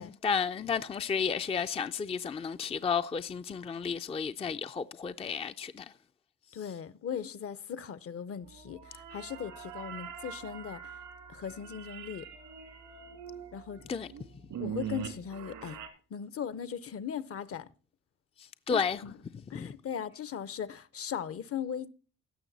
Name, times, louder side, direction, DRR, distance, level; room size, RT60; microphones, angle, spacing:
voice 1, 0.0-5.9 13.9-14.1 18.4-19.0 19.5-19.7, left 6 dB, 20° left, 0.4 m, -32 dB
voice 2, 6.5-10.9 11.3-12.3 13.5-13.8 14.6-15.8 16.1-17.7 18.7-19.1 19.5-21.9, left 8 dB, 50° left, 0.7 m, -38 dB
sound 1, 8.4-15.9, right 8 dB, 85° right, 2.2 m, -43 dB
16.0 x 6.5 x 4.1 m
cardioid pair, 90°, 30 cm